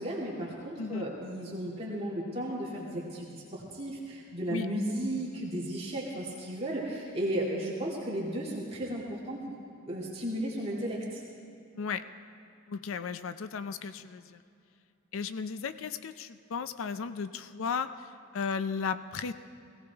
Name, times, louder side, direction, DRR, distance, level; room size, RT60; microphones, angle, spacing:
voice 1, 0.0-9.4 9.9-11.2, right 1 dB, 30° right, -5 dB, 2.2 m, -34 dB
voice 2, 11.7-12.0 12.7-14.4 15.1-19.3, left 5 dB, 75° left, 12 dB, 0.5 m, -35 dB
17.5 x 17.0 x 3.5 m, 2.6 s
head